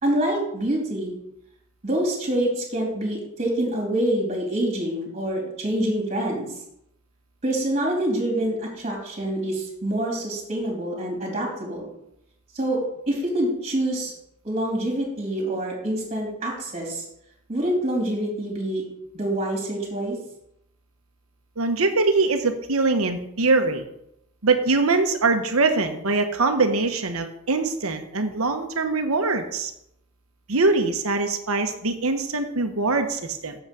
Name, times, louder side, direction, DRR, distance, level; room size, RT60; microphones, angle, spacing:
voice 1, 0.0-1.1 1.8-6.5 7.4-11.9 12.5-14.1 14.4-17.0 17.5-18.8 19.1-20.2, right 1 dB, 30° right, -1 dB, 3.3 m, -26 dB
voice 2, 21.6-23.8 24.4-29.7 30.5-33.6, right 3 dB, 75° right, 6 dB, 1.2 m, -23 dB
7.3 x 6.2 x 7.0 m, 0.78 s
head